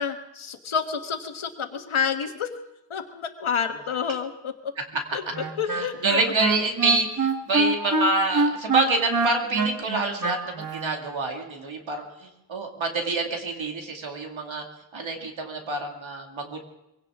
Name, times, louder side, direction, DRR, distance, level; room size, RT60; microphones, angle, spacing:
voice 1, 0.0-2.5 2.9-4.7 5.1-6.2, left 7 dB, 85° left, 6 dB, 1.6 m, -29 dB
Wind instrument woodwind instrument, 5.3-10.9, right 3 dB, 40° right, 1.7 m, -25 dB
voice 2, 5.7-14.6 14.9-16.6, right 2 dB, 70° right, 2 dB, 2.5 m, -27 dB
23.0 x 17.0 x 3.7 m, 0.89 s
wide cardioid pair, 95°, 47 cm